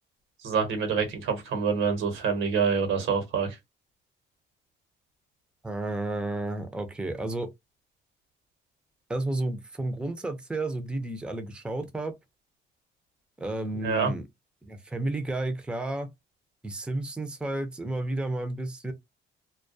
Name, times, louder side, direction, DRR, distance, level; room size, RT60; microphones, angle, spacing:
voice 1, 0.4-3.6 13.7-14.1, right 5 dB, 85° right, 1.0 m, -26 dB
voice 2, 5.6-7.5 9.1-12.1 13.4-14.2 14.6-16.1 16.6-18.9, right 2 dB, 5° right, 0.5 m, -32 dB
2.2 x 2.2 x 2.5 m
cardioid pair, 90°, 20 cm